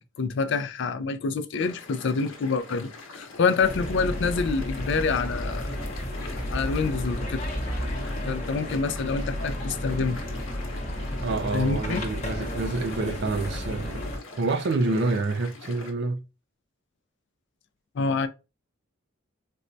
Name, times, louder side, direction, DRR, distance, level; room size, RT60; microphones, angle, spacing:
voice 1, 0.2-5.7 6.5-7.4 8.3-10.2 11.5-12.0 17.9-18.3, left 4 dB, 60° left, 0.4 m, -27 dB
sound 1, 1.6-15.9, left 3 dB, 80° left, 0.9 m, -44 dB
sound 2, 3.6-14.2, left 1 dB, 35° left, 0.8 m, -32 dB
voice 2, 11.2-14.0 14.4-16.2, right 3 dB, 60° right, 0.4 m, -27 dB
4.3 x 2.1 x 2.5 m
head